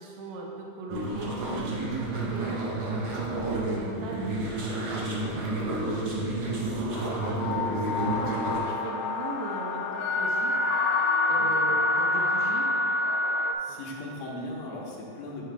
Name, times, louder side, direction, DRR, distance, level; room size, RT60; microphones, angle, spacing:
voice 1, 0.0-4.3 4.9-5.1 5.6-6.2 6.5-10.5 11.3-12.7 13.7-13.8, right 4 dB, 75° right, -2 dB, 1.9 m, -39 dB
sound 1, 0.9-8.6, right 2 dB, 60° right, 1.2 m, -30 dB
voice 2, 5.0-5.4 11.3-11.7 13.6-15.5, left 1 dB, 70° left, -3 dB, 2.1 m, -39 dB
sound 2, 6.9-13.5, left 2 dB, 90° left, 2.1 m, -27 dB
8.7 x 7.8 x 2.3 m, 2.8 s
omnidirectional pair, 3.6 m